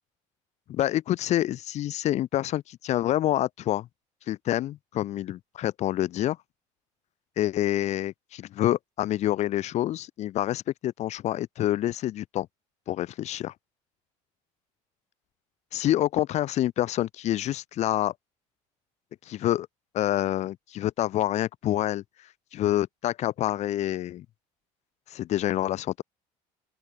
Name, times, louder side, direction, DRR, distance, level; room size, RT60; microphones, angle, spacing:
voice 1, 0.7-3.9 4.3-6.4 7.4-12.5 12.9-13.5 15.7-18.1 19.3-19.7 19.9-22.0 22.5-24.3 25.1-26.0, left 13 dB, 50° left, 0.8 m, -27 dB
open air
cardioid pair, 120°, 15 cm